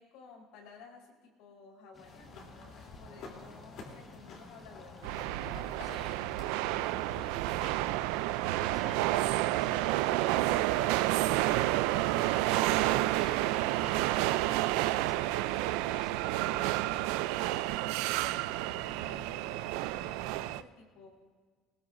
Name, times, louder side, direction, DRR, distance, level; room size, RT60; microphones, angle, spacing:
voice 1, 0.0-2.5 3.0-5.1 17.7-18.1 19.0-21.2, left 4 dB, 75° left, -1 dB, 4.3 m, -55 dB
sound 1, 1.9-20.6, left 2 dB, 25° left, 1.4 m, -57 dB
sound 2, 2.0-14.1, left 3 dB, 50° left, 3.2 m, -51 dB
voice 2, 3.3-3.6 5.8-6.2 7.0-8.0 8.6-11.8 12.5-17.0, left 1 dB, 10° left, 5 dB, 0.8 m, -52 dB
sound 3, 5.0-20.6, right 16 dB, 80° right, 0.4 m, -30 dB
20.5 x 20.5 x 2.6 m, 1.5 s
cardioid pair, 160°, 0 cm